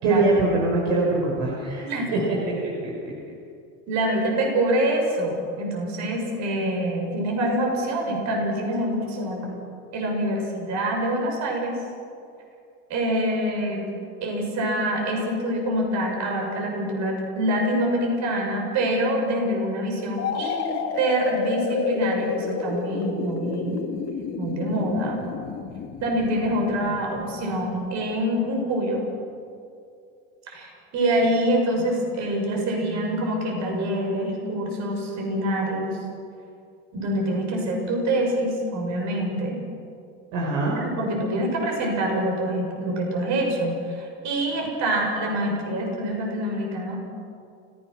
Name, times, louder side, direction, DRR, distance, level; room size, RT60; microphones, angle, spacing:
voice 1, 0.0-1.9 2.1-2.4 2.8-3.1 40.3-40.7, right 2 dB, 65° right, -3 dB, 5.7 m, -23 dB
voice 2, 1.8-2.1 3.9-9.5 9.9-11.8 12.9-13.9 14.2-23.9 24.4-25.2 26.0-29.0 30.5-36.0 36.9-39.6 40.7-47.0, right 1 dB, 50° right, 0 dB, 6.8 m, -25 dB
sound 1, 20.2-27.8, left 6 dB, 45° left, 2.6 m, -30 dB
29.5 x 16.5 x 6.3 m, 2.4 s
supercardioid pair, 125°, 35 cm